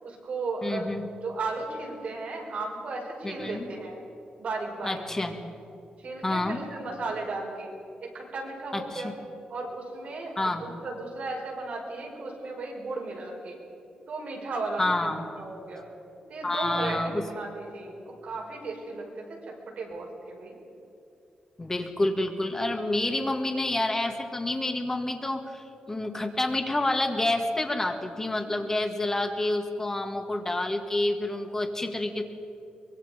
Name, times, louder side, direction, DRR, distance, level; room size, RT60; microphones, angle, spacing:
voice 1, 0.0-0.9 1.2-4.0 4.4-5.0 6.0-7.7 8.0-9.1 9.5-13.6 14.1-15.9 16.3-20.6, right 3 dB, 55° right, -1 dB, 5.4 m, -35 dB
voice 2, 0.6-1.0 3.2-3.7 4.8-5.3 6.2-6.6 8.7-9.1 10.4-10.7 14.8-15.3 16.4-17.3 21.6-32.2, left 2 dB, 20° left, 4 dB, 1.9 m, -28 dB
24.0 x 22.5 x 5.2 m, 2.7 s
wide cardioid pair, 150°, 3 cm